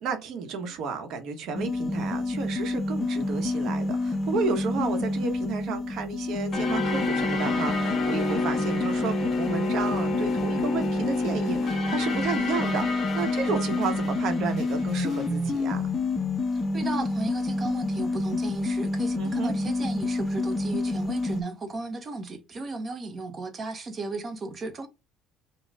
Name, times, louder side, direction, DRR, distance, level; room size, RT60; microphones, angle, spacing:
voice 1, 0.0-15.9 19.1-19.5, right 5 dB, 60° right, 1.1 m, -32 dB
sound 1, 1.5-21.4, left 2 dB, 20° left, 0.6 m, -28 dB
sound 2, 6.5-15.3, left 3 dB, 40° left, 1.2 m, -32 dB
voice 2, 16.5-24.9, right 3 dB, 30° right, 0.9 m, -35 dB
5.4 x 2.3 x 3.5 m
cardioid pair, 125°, 0 cm